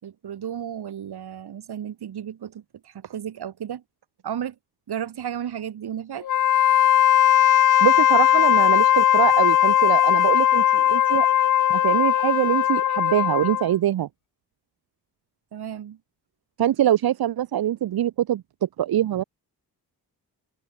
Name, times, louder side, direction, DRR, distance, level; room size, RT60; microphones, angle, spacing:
voice 1, 0.0-3.8 4.2-4.6 4.9-6.3 15.5-16.0, right 9 dB, 90° right, 7.5 m, -33 dB
Wind instrument woodwind instrument, 6.2-13.7, left 11 dB, 55° left, 0.7 m, -18 dB
voice 2, 7.8-11.3 11.7-14.1 16.6-19.2, right 11 dB, 70° right, 0.9 m, -23 dB
open air
wide cardioid pair, 160°, 38 cm